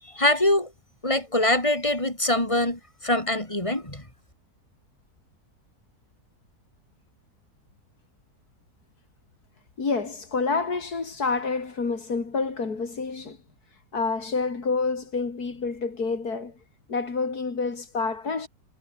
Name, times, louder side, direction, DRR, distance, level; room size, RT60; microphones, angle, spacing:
voice 1, 0.0-0.7 1.0-4.1, left 1 dB, 20° left, 5.3 m, -24 dB
voice 2, 9.8-13.4 13.9-16.6 16.9-18.5, left 4 dB, 85° left, 3.5 m, -28 dB
omnidirectional pair, 1.6 m